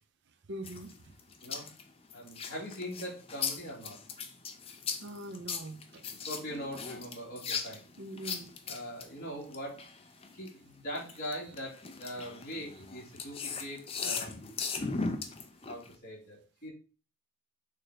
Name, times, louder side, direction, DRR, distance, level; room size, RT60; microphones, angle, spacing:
voice 1, 0.5-0.9 5.0-6.0 8.0-8.6, right 1 dB, 50° right, 0.7 m, -42 dB
sound 1, 0.6-10.5 10.9-16.0, left 5 dB, 25° left, 0.6 m, -38 dB
voice 2, 2.1-4.0 6.3-7.8 8.7-9.9 10.3-14.6 15.7-16.7, equal, 45° left, 3.0 m, -42 dB
6.6 x 3.0 x 5.0 m
head